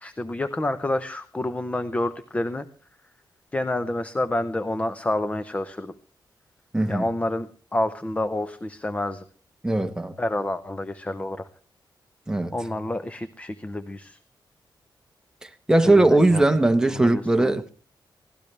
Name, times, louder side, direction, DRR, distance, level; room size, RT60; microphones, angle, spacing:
voice 1, 0.0-2.7 3.5-5.9 6.9-9.2 10.2-11.5 12.5-14.2 15.8-16.4 16.8-17.6, left 1 dB, 15° left, 0.8 m, -28 dB
voice 2, 6.7-7.0 9.6-10.1 12.3-12.5 15.4-17.7, right 2 dB, 10° right, 1.2 m, -20 dB
24.5 x 17.5 x 3.4 m
wide cardioid pair, 145°, 8 cm